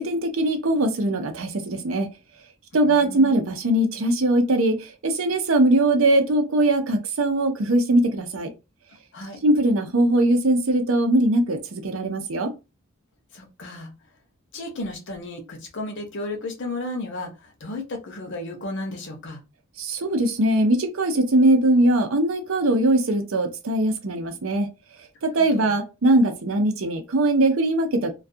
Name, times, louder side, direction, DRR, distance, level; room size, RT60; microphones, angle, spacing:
voice 1, 0.0-2.1 2.7-8.5 9.4-12.5 19.8-24.7 25.2-28.1, right 1 dB, 75° right, 0.6 m, -21 dB
voice 2, 2.7-3.4 9.1-9.4 13.3-13.9 14.5-19.4 25.4-25.8, left 2 dB, 60° left, 0.8 m, -34 dB
2.3 x 2.3 x 2.6 m
head